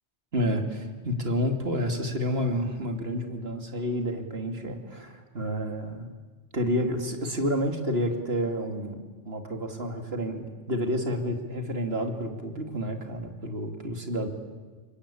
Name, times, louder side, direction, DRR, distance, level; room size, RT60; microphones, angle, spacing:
voice 1, 0.3-6.1 6.5-14.3, equal, 60° right, 4 dB, 2.8 m, -30 dB
28.5 x 23.5 x 8.6 m, 1.4 s
omnidirectional pair, 1.2 m